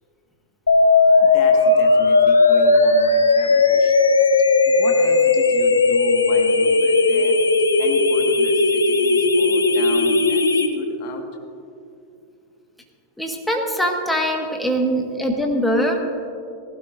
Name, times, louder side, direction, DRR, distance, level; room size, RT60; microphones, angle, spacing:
sound 1, 0.7-10.7, left 3 dB, 75° left, 0.7 m, -16 dB
voice 1, 1.2-7.4 7.8-11.2, left 4 dB, 45° left, 4 dB, 1.6 m, -35 dB
voice 2, 13.2-16.0, equal, 5° left, 2 dB, 1.5 m, -22 dB
18.5 x 16.0 x 2.6 m, 2.6 s
figure-of-eight pair, 90°, 0 cm